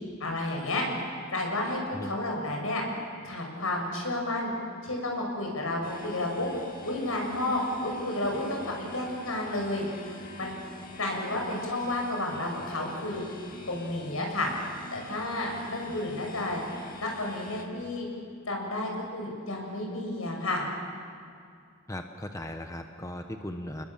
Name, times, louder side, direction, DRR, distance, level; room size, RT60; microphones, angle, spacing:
voice 1, 0.2-0.8 1.3-2.8 3.2-4.5 4.8-6.5 6.8-8.6 8.9-9.8 10.4-10.5 11.0-13.2 13.7-14.5 14.9-16.6 17.0-18.1 18.4-20.6, left 2 dB, 80° left, 0 dB, 6.6 m, -31 dB
sound 1, 5.8-17.7, left 1 dB, 40° left, 2.3 m, -46 dB
voice 2, 21.9-23.8, left 1 dB, 15° left, 5 dB, 1.0 m, -38 dB
29.5 x 21.0 x 7.3 m, 2.3 s
head